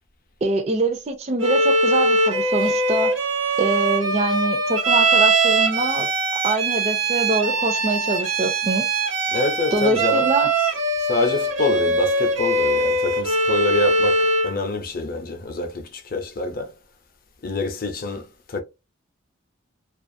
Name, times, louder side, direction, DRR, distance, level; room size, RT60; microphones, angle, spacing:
voice 1, 0.4-3.2 3.6-6.1 6.4-8.9 9.7-10.5, right 2 dB, 30° right, 0.4 m, -24 dB
Bowed string instrument, 1.4-14.6, right 2 dB, 65° right, 0.7 m, -21 dB
voice 2, 9.3-10.3 10.6-10.7 11.1-16.7 17.4-18.6, left 2 dB, 45° left, 0.5 m, -26 dB
2.4 x 2.3 x 2.5 m
head